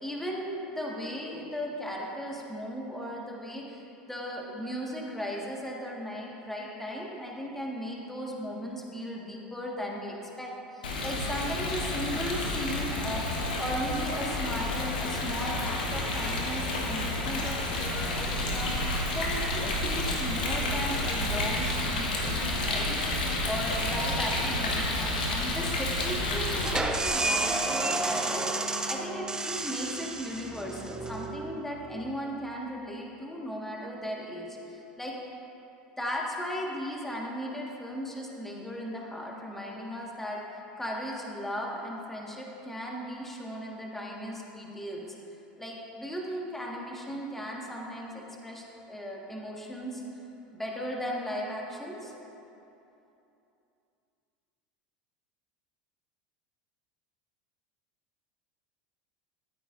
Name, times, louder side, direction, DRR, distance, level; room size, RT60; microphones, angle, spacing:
voice 1, 0.0-18.7 19.1-23.0 23.4-35.2 36.0-45.0 45.6-50.0 50.5-52.1, equal, 5° left, -2 dB, 1.5 m, -36 dB
Rain, 10.8-26.8, left 1 dB, 85° left, 1.3 m, -30 dB
sound 1, 26.6-32.1, right 2 dB, 15° right, 0.7 m, -31 dB
13.5 x 8.7 x 2.5 m, 2.9 s
hypercardioid pair, 85°, 5 cm